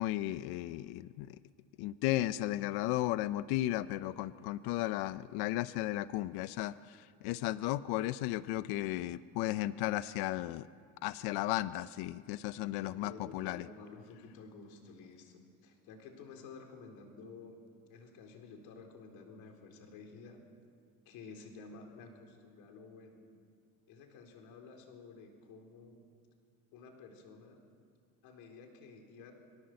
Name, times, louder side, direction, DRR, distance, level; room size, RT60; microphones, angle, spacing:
voice 1, 0.0-1.4 1.8-10.7 11.0-13.7, left 15 dB, 85° left, 14 dB, 0.7 m, -35 dB
voice 2, 12.8-17.6 17.9-20.4 21.1-23.2 23.9-26.0 26.7-27.6 28.2-29.3, left 4 dB, 70° left, 3 dB, 4.1 m, -52 dB
27.0 x 24.0 x 7.8 m, 2.3 s
cardioid pair, 175°, 38 cm